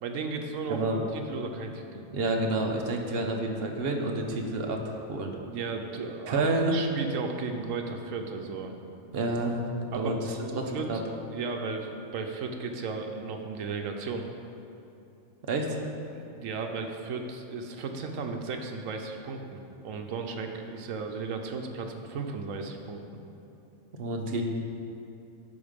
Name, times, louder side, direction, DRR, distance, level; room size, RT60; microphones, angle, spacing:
voice 1, 0.0-0.8 1.1-2.0 5.4-8.7 9.9-11.0 11.3-14.3 16.1-23.2, right 4 dB, 80° right, 4 dB, 1.1 m, -35 dB
voice 2, 0.7-1.0 2.1-5.4 6.3-6.8 9.1-9.6 9.9-11.0 15.4-15.8 24.0-24.4, right 2 dB, 55° right, 2 dB, 0.9 m, -29 dB
11.0 x 3.9 x 5.1 m, 2.8 s
omnidirectional pair, 1.4 m